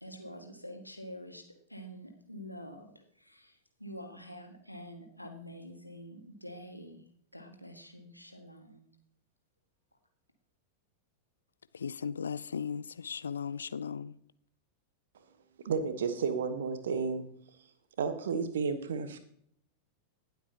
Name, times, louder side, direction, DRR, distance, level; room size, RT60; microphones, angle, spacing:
voice 1, 0.0-1.4 1.7-7.1 7.3-8.9, equal, 90° left, 1.8 m, -47 dB
voice 2, 11.7-14.2, left 6 dB, 70° left, 0.4 m, -37 dB
voice 3, 15.6-17.3 18.0-19.2, right 5 dB, 60° right, 1.4 m, -32 dB
19.0 x 8.1 x 2.9 m
figure-of-eight pair, 90°, 0 cm